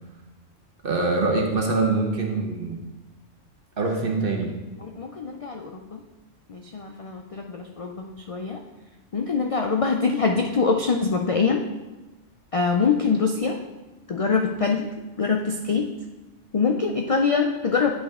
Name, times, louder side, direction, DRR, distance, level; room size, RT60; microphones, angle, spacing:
voice 1, 0.8-2.8 3.8-4.5, right 3 dB, 50° right, 1 dB, 1.2 m, -24 dB
voice 2, 4.8-6.0 6.5-8.6 9.1-11.6 12.5-13.6 14.1-14.9 15.2-15.9 16.5-17.9, left 5 dB, 50° left, 2 dB, 0.4 m, -24 dB
9.4 x 5.4 x 3.6 m, 1.1 s
omnidirectional pair, 1.2 m